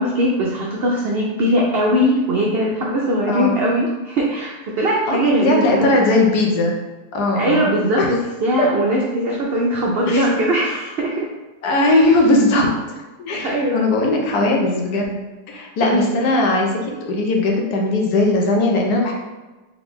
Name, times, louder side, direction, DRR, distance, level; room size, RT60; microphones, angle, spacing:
voice 1, 0.0-5.9 7.3-11.3 11.9-12.1 13.3-13.8 14.3-14.4 15.8-16.1, equal, 85° right, -2 dB, 0.5 m, -20 dB
voice 2, 5.1-6.7 7.1-7.7 8.0-8.1 8.6-8.7 10.1-10.4 11.6-15.2 15.5-16.8 17.0-19.1, left 2 dB, 80° left, 0 dB, 1.3 m, -19 dB
3.7 x 3.3 x 3.6 m, 1.1 s
omnidirectional pair, 1.7 m